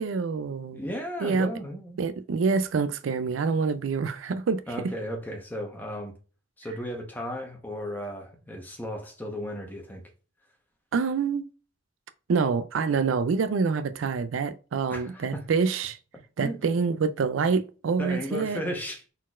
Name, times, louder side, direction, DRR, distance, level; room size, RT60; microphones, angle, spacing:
voice 1, 0.0-0.8 1.2-1.5 2.0-4.6 10.9-11.4 12.3-16.0 16.4-18.6, right 5 dB, 80° right, 0.4 m, -26 dB
voice 2, 0.7-2.0 4.7-6.1 6.6-10.0 14.9-15.4 16.4-16.6 18.0-19.0, equal, 10° left, 1.0 m, -35 dB
4.2 x 4.1 x 2.4 m
head